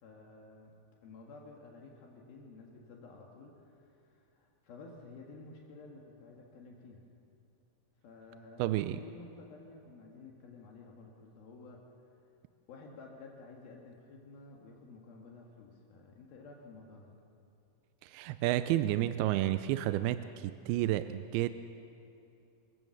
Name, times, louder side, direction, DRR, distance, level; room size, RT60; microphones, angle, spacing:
voice 1, 0.0-0.7 1.0-7.0 8.0-8.6 9.0-12.2 12.7-17.1, left 3 dB, 70° left, -1 dB, 3.5 m, -52 dB
voice 2, 8.6-9.0 18.0-21.5, right 14 dB, 80° right, 11 dB, 2.4 m, -31 dB
27.5 x 15.5 x 7.2 m, 2.7 s
omnidirectional pair, 4.6 m